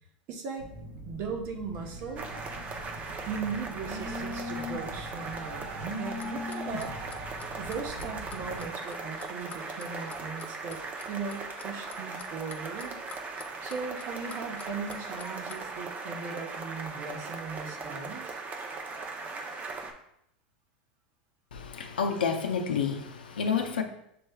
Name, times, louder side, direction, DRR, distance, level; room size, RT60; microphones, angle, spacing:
voice 1, 0.3-0.7 1.0-2.3 3.3-6.9 7.6-10.8 11.1-13.0 13.6-18.4, right 5 dB, 55° right, 2 dB, 1.0 m, -38 dB
Telephone, 0.6-8.6, left 1 dB, 85° right, 1.1 m, -41 dB
sound 1, 2.2-19.9, right 3 dB, 30° right, 0.7 m, -39 dB
Clock, 6.2-15.8, left 6 dB, 30° left, 0.5 m, -47 dB
voice 2, 21.5-23.8, left 6 dB, 85° left, 5 dB, 0.6 m, -29 dB
6.8 x 3.2 x 2.3 m, 0.75 s
hypercardioid pair, 95°, 5 cm